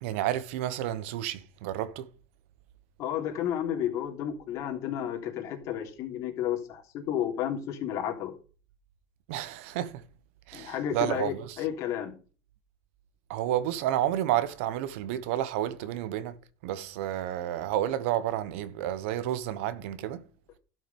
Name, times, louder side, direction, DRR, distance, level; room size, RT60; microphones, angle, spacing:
voice 1, 0.0-2.1 9.3-10.0 10.5-11.6 13.3-16.3 16.6-20.2, right 12 dB, 80° right, 1.2 m, -30 dB
voice 2, 3.0-8.3 10.5-12.1, left 10 dB, 50° left, 3.2 m, -32 dB
12.0 x 6.4 x 5.5 m
supercardioid pair, 135°, 7 cm